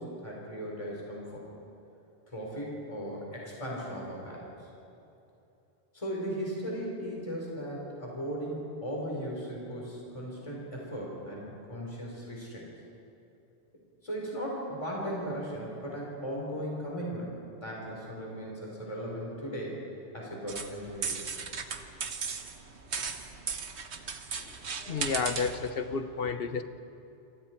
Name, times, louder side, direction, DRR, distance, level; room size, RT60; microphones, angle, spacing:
voice 1, 0.0-1.4 2.3-4.5 5.9-12.6 14.0-17.3 17.6-19.8 20.1-21.2, equal, 30° left, -4 dB, 4.4 m, -37 dB
sound 1, 20.5-25.7, right 5 dB, 80° right, 1.5 m, -36 dB
voice 2, 24.9-26.6, left 5 dB, 60° left, 9 dB, 1.2 m, -31 dB
28.5 x 24.5 x 4.6 m, 2.8 s
omnidirectional pair, 1.1 m